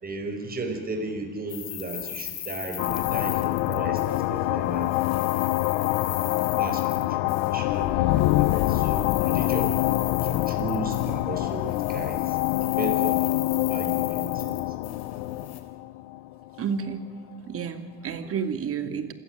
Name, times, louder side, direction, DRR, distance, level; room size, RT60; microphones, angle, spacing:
voice 1, 0.0-4.9 6.6-9.7 10.2-12.4 12.8-13.2 13.7-14.7, right 2 dB, 30° right, 3 dB, 5.0 m, -35 dB
sound 1, 1.5-4.5 4.7-7.5 8.1-11.4 11.7-15.6, left 10 dB, 60° left, 3.6 m, -38 dB
sound 2, 2.8-16.9, left 18 dB, 85° left, 0.8 m, -25 dB
voice 2, 16.6-17.0 17.5-19.1, right 7 dB, 50° right, 8 dB, 2.7 m, -30 dB
27.0 x 16.0 x 9.2 m, 1.5 s
supercardioid pair, 90°, 30 cm